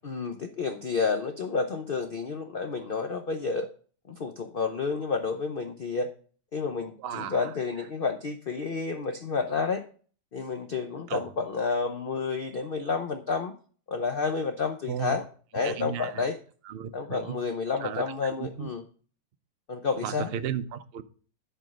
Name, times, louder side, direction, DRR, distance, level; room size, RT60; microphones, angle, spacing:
voice 1, 0.0-3.7 4.1-6.1 6.5-9.8 10.3-13.5 13.9-15.2 15.5-16.4 16.9-18.8 19.7-20.3, left 4 dB, 70° left, 0.5 m, -30 dB
voice 2, 7.0-7.5 11.1-11.2 14.9-15.2 15.6-16.2 16.7-17.4 17.8-18.1 18.4-18.7 20.0-21.0, right 9 dB, 90° right, 0.5 m, -34 dB
11.0 x 4.4 x 5.1 m
omnidirectional pair, 1.9 m